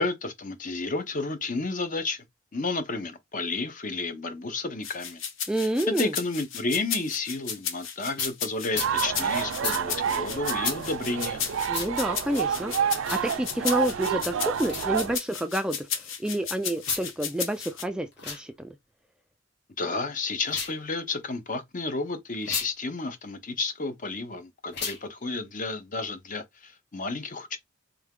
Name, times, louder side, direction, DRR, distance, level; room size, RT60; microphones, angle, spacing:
voice 1, 0.0-2.2 2.5-5.2 5.6-11.4 19.8-27.6, left 3 dB, 40° left, 0.7 m, -31 dB
sound 1, 4.8-17.8, left 7 dB, 75° left, 0.7 m, -34 dB
voice 2, 5.5-6.1 11.7-18.8, right 1 dB, 5° right, 0.3 m, -29 dB
sound 2, 8.2-8.3 8.7-8.9 9.6-9.8 10.6-10.8 11.7-11.9 13.0-13.2 14.6-14.9 16.8-17.1 18.1-18.4 20.4-20.8 22.4-22.7 24.7-25.0, left 5 dB, 60° left, 1.2 m, -32 dB
sound 3, 8.7-15.2, right 8 dB, 80° right, 0.4 m, -29 dB
3.4 x 2.8 x 3.6 m
head